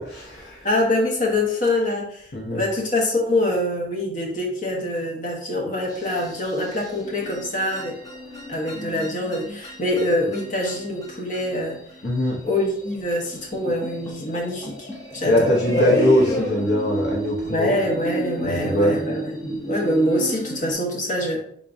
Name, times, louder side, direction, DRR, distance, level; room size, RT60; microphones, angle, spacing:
voice 1, 0.0-0.6 2.3-2.6 12.0-12.4 15.2-17.7 18.4-19.0, left 1 dB, 60° left, -3 dB, 0.8 m, -22 dB
voice 2, 0.6-8.0 8.5-11.8 12.4-16.0 17.4-21.4, left 1 dB, 40° left, -2 dB, 1.1 m, -25 dB
sound 1, 5.9-20.7, right 1 dB, 20° left, 0.7 m, -30 dB
4.8 x 3.6 x 2.6 m, 0.62 s
head